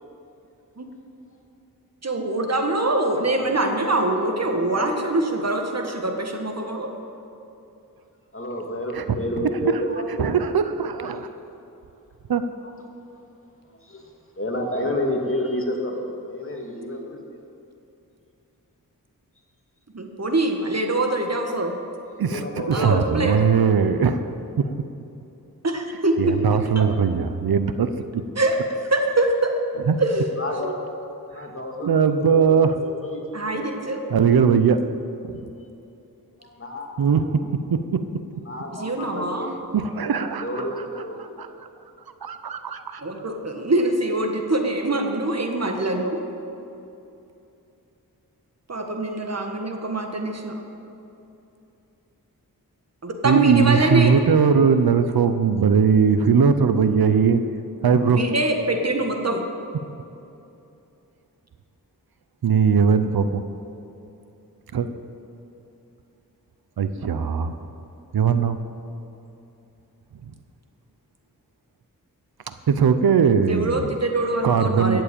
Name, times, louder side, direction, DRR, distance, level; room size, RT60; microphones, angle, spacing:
voice 1, 2.0-6.9 19.9-21.8 22.7-23.4 25.6-26.1 26.7-26.9 28.3-29.5 30.0-30.3 30.6-30.7 31.8-31.9 33.3-34.0 38.8-39.5 43.0-46.2 48.7-50.5 53.0-54.1 58.1-59.4 73.5-75.0, right 2 dB, 45° right, 3 dB, 1.7 m, -24 dB
voice 2, 3.1-3.9 4.3-5.2 8.3-10.4 12.6-12.8 13.7-17.2 22.3-23.6 30.4-30.8 31.3-34.1 34.4-34.5 36.4-37.3 38.4-39.5 40.4-40.7 41.0-41.4, left 1 dB, 35° left, 1 dB, 2.3 m, -31 dB
voice 3, 10.2-11.3 12.3-12.4 22.2-22.4 22.7-24.3 26.2-27.9 29.9-30.0 31.9-32.7 34.1-34.8 37.0-37.2 37.7-38.0 39.7-40.4 41.4-41.5 42.2-43.0 53.2-57.4 57.8-58.2 62.4-63.4 64.7-64.9 66.8-67.6 68.1-68.6 72.5-73.9 74.4-75.0, right 6 dB, 75° right, 10 dB, 0.7 m, -19 dB
14.0 x 7.6 x 8.5 m, 2.8 s
wide cardioid pair, 60°, 36 cm